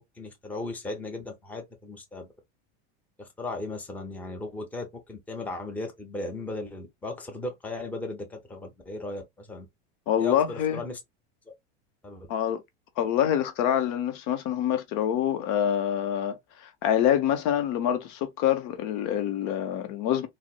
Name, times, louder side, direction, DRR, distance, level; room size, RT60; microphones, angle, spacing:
voice 1, 0.2-2.3 3.2-9.7 10.2-11.0 12.0-12.3, left 2 dB, 5° left, 0.7 m, -36 dB
voice 2, 10.1-10.8 12.3-12.6 13.0-20.3, left 10 dB, 55° left, 0.7 m, -26 dB
4.0 x 2.0 x 2.3 m
supercardioid pair, 130°, 34 cm